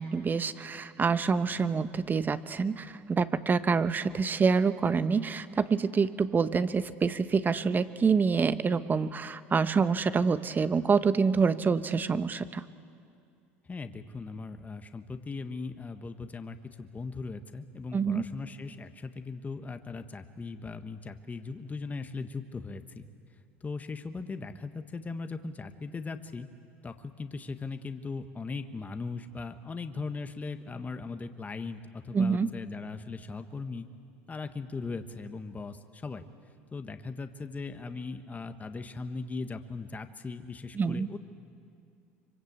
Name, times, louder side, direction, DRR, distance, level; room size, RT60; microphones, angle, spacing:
voice 1, 0.0-12.6 17.9-18.2 32.1-32.5 40.8-41.1, right 5 dB, 30° right, 13 dB, 1.1 m, -26 dB
voice 2, 13.7-23.1 23.6-26.5 26.8-33.9 34.3-36.2 36.7-41.2, left 4 dB, 25° left, 8 dB, 1.5 m, -39 dB
25.5 x 25.0 x 8.2 m, 2.4 s
hypercardioid pair, 75°, 7 cm